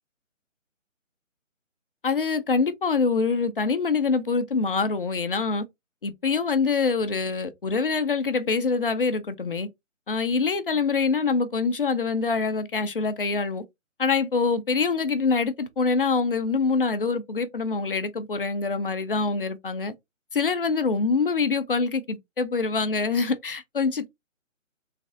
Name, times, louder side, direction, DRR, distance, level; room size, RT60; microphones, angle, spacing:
voice 1, 2.0-5.6 6.0-9.7 10.1-13.6 14.0-19.9 20.3-24.1, left 4 dB, 45° left, 0.5 m, -25 dB
3.2 x 2.4 x 2.4 m
hypercardioid pair, 165°, 39 cm